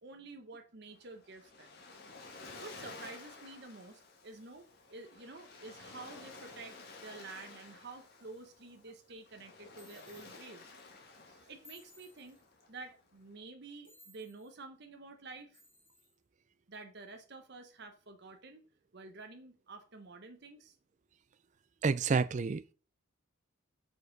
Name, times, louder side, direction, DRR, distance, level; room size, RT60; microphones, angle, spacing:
voice 1, 0.0-1.8 2.4-10.7 11.5-12.4 12.7-15.6 16.7-18.6 18.9-20.7, right 3 dB, 55° right, 0.9 m, -50 dB
Waves surf, 0.9-13.3, left 3 dB, 50° left, 1.7 m, -53 dB
sound 1, 9.7-10.5 11.6-12.5 13.8-14.5 15.5-16.2, left 2 dB, 10° left, 2.0 m, -60 dB
voice 2, 21.8-22.7, right 4 dB, 35° right, 0.3 m, -29 dB
6.4 x 5.1 x 5.2 m
head